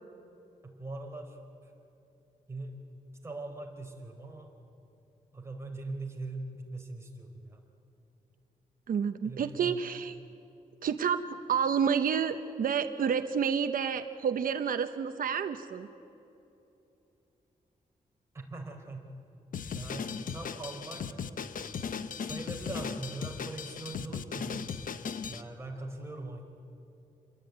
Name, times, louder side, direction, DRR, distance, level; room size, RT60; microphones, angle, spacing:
voice 1, 0.6-1.7 2.5-2.8 3.2-4.5 5.3-7.6 9.2-9.9 18.3-19.1 19.7-21.2 22.1-24.7 25.2-26.4, right 2 dB, 20° right, 1 dB, 4.2 m, -41 dB
voice 2, 8.9-10.1 10.8-11.2 11.5-15.9, right 7 dB, 80° right, 8 dB, 1.0 m, -29 dB
Drum kit, 19.5-25.4, left 6 dB, 70° left, 1.0 m, -37 dB
27.5 x 22.5 x 9.4 m, 2.8 s
wide cardioid pair, 135°, 14 cm